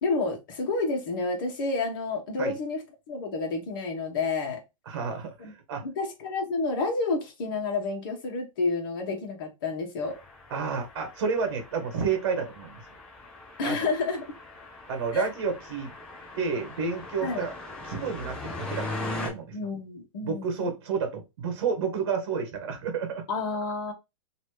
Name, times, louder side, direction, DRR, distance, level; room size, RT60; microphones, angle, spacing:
voice 1, 0.0-2.8 3.1-4.6 5.4-5.5 5.8-10.2 13.6-14.2 15.1-15.3 17.2-17.5 19.5-20.7 23.3-23.9, left 3 dB, 40° left, 1.4 m, -30 dB
voice 2, 4.9-5.9 10.5-12.8 13.6-13.9 14.9-15.9 16.3-17.5 17.8-18.9 19.2-19.6 20.2-23.2, right 5 dB, 45° right, 1.3 m, -30 dB
sound 1, 10.0-19.3, left 2 dB, 5° left, 0.4 m, -40 dB
3.1 x 2.9 x 4.6 m
supercardioid pair, 180°, 17 cm